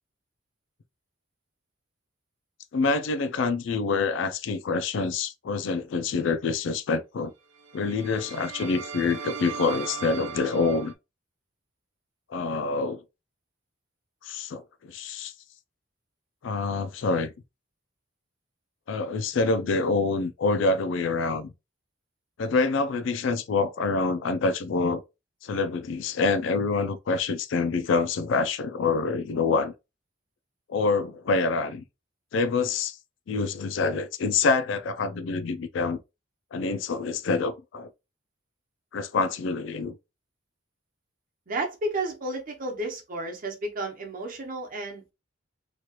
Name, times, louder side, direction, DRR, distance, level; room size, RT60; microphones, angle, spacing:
voice 1, 2.7-7.3 7.7-10.9 12.3-13.0 14.2-15.3 16.4-17.3 18.9-21.5 22.4-25.0 25.4-29.7 30.7-31.8 32.3-33.0 33.3-36.0 36.5-37.9 38.9-39.9, left 4 dB, 70° left, 0.4 m, -26 dB
sound 1, 7.5-10.9, right 7 dB, 85° right, 0.5 m, -38 dB
voice 2, 41.5-45.1, right 2 dB, 45° right, 0.9 m, -32 dB
3.1 x 2.4 x 2.9 m
head